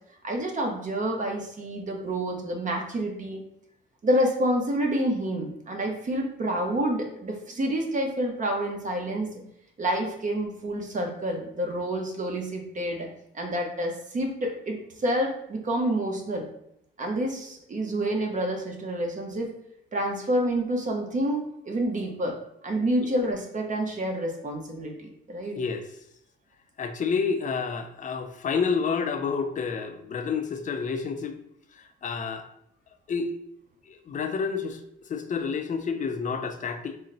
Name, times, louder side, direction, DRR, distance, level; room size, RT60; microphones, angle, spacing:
voice 1, 0.2-3.4 4.0-9.3 9.8-13.1 13.3-16.5 17.0-19.5 19.9-22.4 22.6-25.6, right 1 dB, 40° right, 2 dB, 0.9 m, -28 dB
voice 2, 25.6-25.9 26.8-31.4 31.8-32.5 33.1-33.4 33.9-34.8 35.1-37.0, left 5 dB, 40° left, 7 dB, 0.5 m, -29 dB
3.9 x 2.1 x 3.9 m, 0.75 s
cardioid pair, 90°, 20 cm